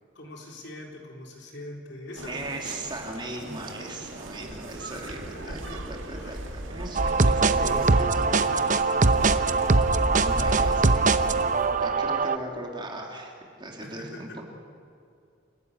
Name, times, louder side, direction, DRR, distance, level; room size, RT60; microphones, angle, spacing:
voice 1, 0.1-2.6 4.9-5.8 6.1-6.4 7.5-9.8 13.8-14.4, left 1 dB, 65° left, 0 dB, 4.1 m, -42 dB
sound 1, 2.2-12.0, right 1 dB, 90° right, 2.1 m, -35 dB
voice 2, 2.3-8.6 8.9-9.4 10.2-14.4, right 1 dB, 25° right, 1 dB, 2.9 m, -38 dB
sound 2, 7.0-12.4, right 3 dB, 40° right, 0.8 m, -22 dB
29.0 x 12.5 x 9.8 m, 2.5 s
head